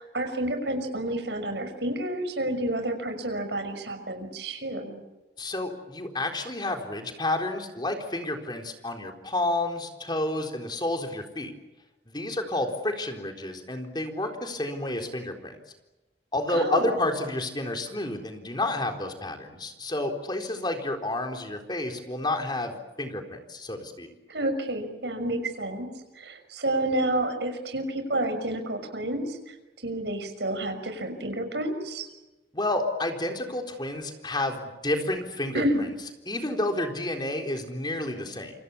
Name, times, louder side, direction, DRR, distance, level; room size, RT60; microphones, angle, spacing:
voice 1, 0.0-5.0 16.5-16.9 24.3-25.9 26.2-29.5 29.8-32.1 35.5-35.9, right 1 dB, 75° right, 7 dB, 6.2 m, -29 dB
voice 2, 5.4-11.5 12.1-15.6 16.3-24.1 32.5-35.9 36.3-38.5, left 1 dB, 25° left, 4 dB, 4.0 m, -30 dB
28.5 x 26.0 x 7.2 m, 1.1 s
head